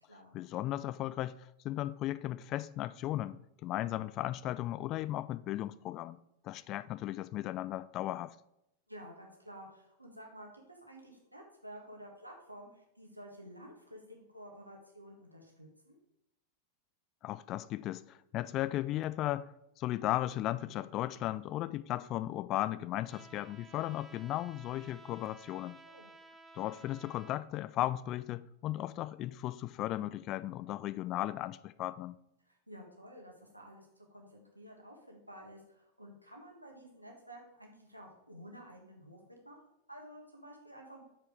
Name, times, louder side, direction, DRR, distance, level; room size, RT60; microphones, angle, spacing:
voice 1, 0.3-6.2 6.4-8.3 17.2-19.5 19.8-25.8 26.5-32.2, left 14 dB, 35° left, 0.3 m, -36 dB
voice 2, 8.9-16.0 25.8-26.1 32.4-41.0, equal, 90° right, 1.6 m, -52 dB
Trumpet, 23.1-27.4, right 3 dB, 10° right, 0.7 m, -55 dB
7.1 x 5.0 x 4.7 m
figure-of-eight pair, 90°, 0 cm